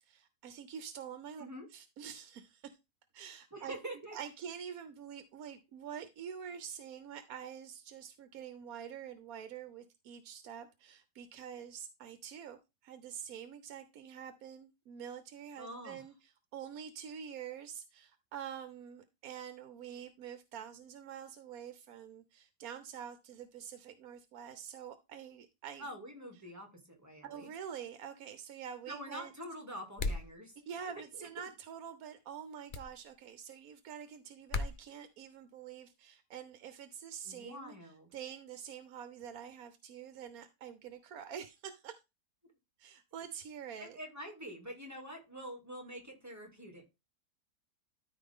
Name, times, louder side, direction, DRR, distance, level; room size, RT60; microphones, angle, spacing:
voice 1, 0.0-1.5 1.7-2.8 3.1-3.8 4.1-25.9 27.2-29.3 30.7-37.7 38.1-41.9 42.8-44.0, right 8 dB, 70° right, 1.1 m, -46 dB
voice 2, 3.5-4.2 15.6-16.0 25.8-27.5 28.9-31.3 37.2-38.1 43.8-46.8, equal, 10° right, 2.5 m, -46 dB
sound 1, 30.0-30.3 32.7-32.9 34.5-34.8, left 3 dB, 50° left, 0.6 m, -34 dB
13.0 x 4.6 x 3.6 m
omnidirectional pair, 1.7 m